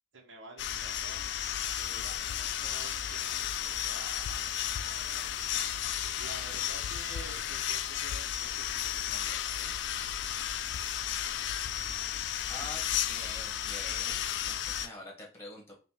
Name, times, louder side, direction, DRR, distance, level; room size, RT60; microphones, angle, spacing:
voice 1, 0.1-5.5 6.2-9.7, right 2 dB, 75° right, -1 dB, 1.1 m, -50 dB
sound 1, 0.6-14.9, left 10 dB, 65° left, 0.3 m, -33 dB
voice 2, 12.5-15.8, left 2 dB, 15° left, -1 dB, 1.2 m, -45 dB
5.4 x 2.6 x 2.9 m, 0.36 s
head